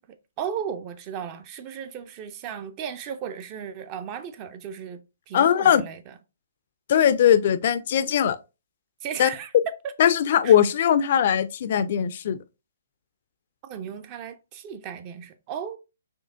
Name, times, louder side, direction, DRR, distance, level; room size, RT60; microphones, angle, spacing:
voice 1, 0.4-6.1 9.0-9.5 9.8-9.9 10.4-10.6 13.6-15.8, right 8 dB, 30° right, 0.4 m, -35 dB
voice 2, 5.3-5.8 6.9-8.4 9.2-9.3 10.0-12.4, left 9 dB, 50° left, 0.3 m, -20 dB
4.3 x 2.7 x 2.5 m
figure-of-eight pair, 135°, 0 cm